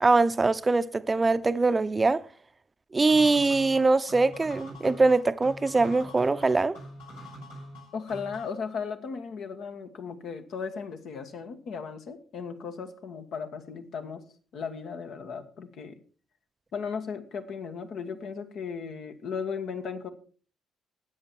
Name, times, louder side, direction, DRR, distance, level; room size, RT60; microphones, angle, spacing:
voice 1, 0.0-2.2 2.9-6.8, right 3 dB, 25° right, 0.8 m, -23 dB
sound 1, 3.1-8.6, equal, 85° left, 5.1 m, -44 dB
voice 2, 7.9-14.2 14.5-16.0 16.7-20.1, left 6 dB, 60° left, 1.5 m, -36 dB
13.0 x 9.5 x 4.6 m
hypercardioid pair, 45°, 0 cm